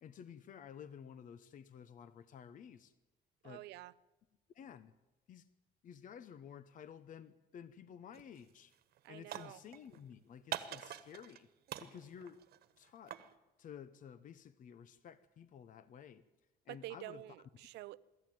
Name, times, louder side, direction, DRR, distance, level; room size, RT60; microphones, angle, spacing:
voice 1, 0.0-2.9 3.4-3.7 4.5-4.9 5.3-5.5 5.8-8.7 9.1-11.5 11.8-12.4 12.8-13.2 13.6-16.2 16.6-17.2, left 8 dB, 50° left, 1.0 m, -53 dB
voice 2, 3.4-3.9 9.0-9.6 16.7-18.0, right 17 dB, 85° right, 0.7 m, -48 dB
sound 1, 8.1-8.4 8.7-10.0 10.5-11.4 11.7-13.3, right 11 dB, 70° right, 1.4 m, -45 dB
23.0 x 13.5 x 9.3 m
cardioid pair, 110°, 17 cm